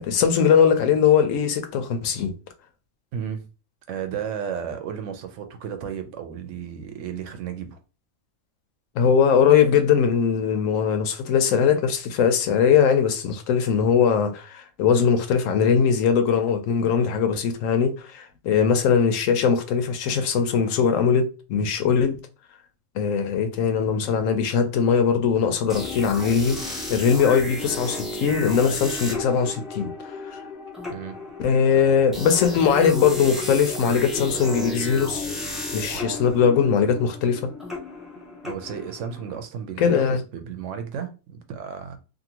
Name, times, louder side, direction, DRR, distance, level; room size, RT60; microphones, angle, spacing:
voice 1, 0.0-2.3 9.0-22.2 22.9-26.6 26.9-30.4 31.4-35.3 35.7-37.5 39.8-40.2, left 7 dB, 80° left, 1.0 m, -20 dB
voice 2, 3.1-3.5 3.9-7.8 18.5-18.7 30.9-31.2 31.7-32.0 35.9-36.2 38.4-42.0, right 8 dB, 70° right, 0.9 m, -34 dB
sound 1, 25.7-39.4, left 1 dB, ahead, 0.3 m, -33 dB
2.7 x 2.6 x 2.8 m
omnidirectional pair, 1.4 m